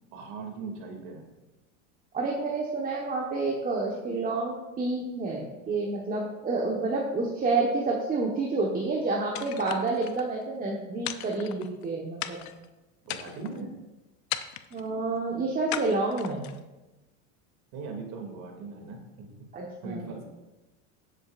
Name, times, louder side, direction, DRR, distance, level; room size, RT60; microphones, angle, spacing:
voice 1, 0.1-1.3 13.0-13.7 17.7-19.3 19.8-20.2, right 4 dB, 55° right, 2 dB, 2.7 m, -39 dB
voice 2, 2.1-12.5 14.7-16.5 19.5-20.1, right 3 dB, 20° right, -2 dB, 1.4 m, -29 dB
sound 1, 9.4-10.2 11.1-11.9 12.2-12.7 13.1-13.6 14.3-14.9 15.7-16.6, left 12 dB, 50° left, 0.7 m, -36 dB
18.0 x 7.9 x 2.6 m, 1.1 s
supercardioid pair, 130°, 37 cm